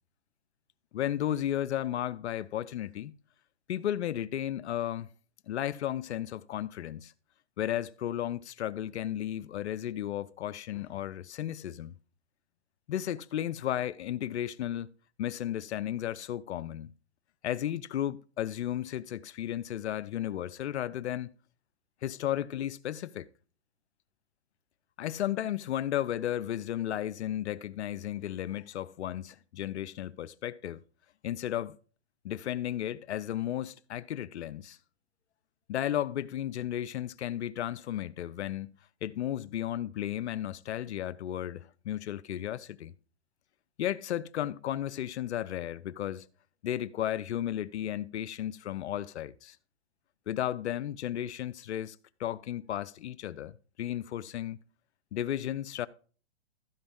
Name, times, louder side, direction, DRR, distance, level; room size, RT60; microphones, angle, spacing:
voice 1, 0.9-3.1 3.7-5.1 5.5-7.1 7.6-12.0 12.9-14.9 15.2-16.9 17.4-21.3 22.0-23.3 25.0-30.8 31.2-31.8 32.2-34.8 35.7-38.8 39.0-42.9 43.8-46.3 46.6-49.6 50.3-54.6 55.1-55.9, left 11 dB, 75° left, 0.6 m, -34 dB
14.5 x 5.2 x 3.6 m
hypercardioid pair, 135°, 33 cm